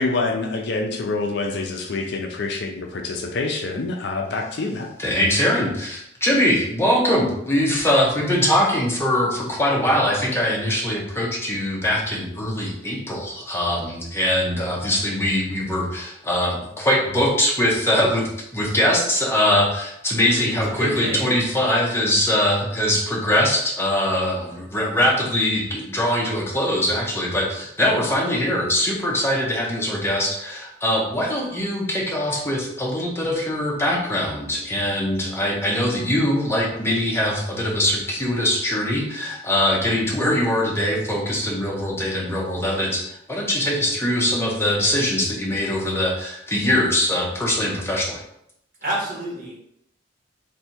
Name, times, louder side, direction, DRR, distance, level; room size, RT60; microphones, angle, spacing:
voice 1, 0.0-4.9, left 3 dB, 60° left, 3 dB, 0.5 m, -26 dB
voice 2, 5.0-48.2, left 1 dB, 15° left, -3 dB, 0.9 m, -22 dB
voice 3, 20.8-21.3 24.5-24.6 48.8-49.6, right 1 dB, 50° right, -5 dB, 1.5 m, -28 dB
3.3 x 2.7 x 4.3 m, 0.75 s
head